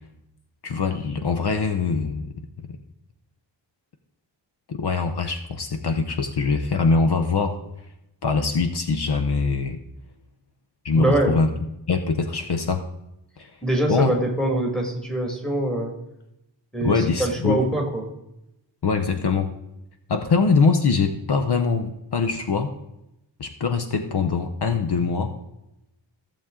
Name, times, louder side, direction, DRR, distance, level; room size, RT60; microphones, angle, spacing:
voice 1, 0.6-2.3 4.7-7.6 8.2-9.8 10.8-11.5 11.9-12.9 13.4-13.5 13.9-14.1 16.8-17.6 18.8-19.5 20.1-22.7 23.4-25.3, left 4 dB, 60° left, 7 dB, 0.8 m, -23 dB
voice 2, 10.9-11.4 13.6-16.0 16.7-18.1, right 1 dB, ahead, 0 dB, 1.8 m, -23 dB
15.0 x 7.2 x 3.7 m, 0.87 s
wide cardioid pair, 180°, 45 cm